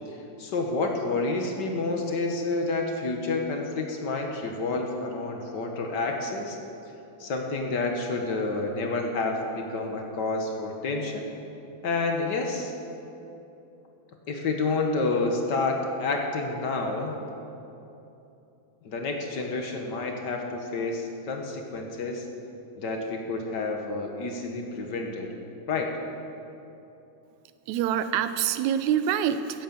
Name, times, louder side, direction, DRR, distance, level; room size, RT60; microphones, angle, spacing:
voice 1, 0.1-6.6 7.2-11.3 11.8-12.7 14.3-17.1 18.8-22.3 22.8-25.3 25.7-25.9, left 3 dB, 55° left, 3 dB, 1.2 m, -29 dB
voice 2, 27.7-29.6, right 9 dB, 80° right, 11 dB, 1.9 m, -26 dB
14.5 x 9.1 x 7.4 m, 2.9 s
omnidirectional pair, 3.4 m